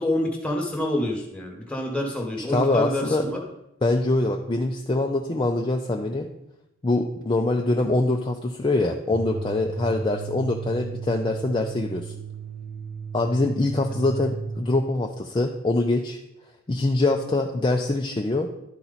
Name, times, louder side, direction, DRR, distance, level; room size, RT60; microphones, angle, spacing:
voice 1, 0.0-3.4, left 1 dB, 5° left, 0 dB, 1.3 m, -27 dB
voice 2, 2.5-3.2 3.8-6.3 6.8-12.1 13.1-16.2 16.7-18.5, left 2 dB, 25° left, 2 dB, 0.4 m, -24 dB
sound 1, 9.1-14.7, right 5 dB, 35° right, 0.7 m, -35 dB
11.5 x 4.4 x 4.1 m, 0.84 s
head